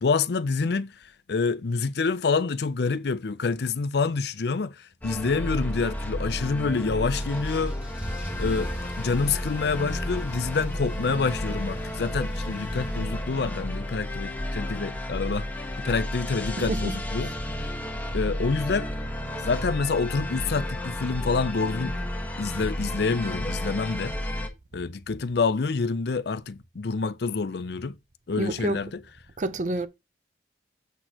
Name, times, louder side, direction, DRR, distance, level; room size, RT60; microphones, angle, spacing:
voice 1, 0.0-7.8 8.4-15.5 15.8-17.7 18.1-18.9 19.4-22.0 22.4-24.1 24.7-28.0 28.3-29.0, left 4 dB, 60° left, 0.5 m, -27 dB
sound 1, 5.0-24.5, left 1 dB, 10° left, 1.3 m, -32 dB
Car / Engine starting / Accelerating revving vroom, 7.2-13.7, right 1 dB, 10° right, 1.7 m, -41 dB
voice 2, 16.6-17.0 28.4-28.8 29.4-29.9, right 2 dB, 45° right, 0.6 m, -28 dB
8.2 x 6.0 x 2.9 m
head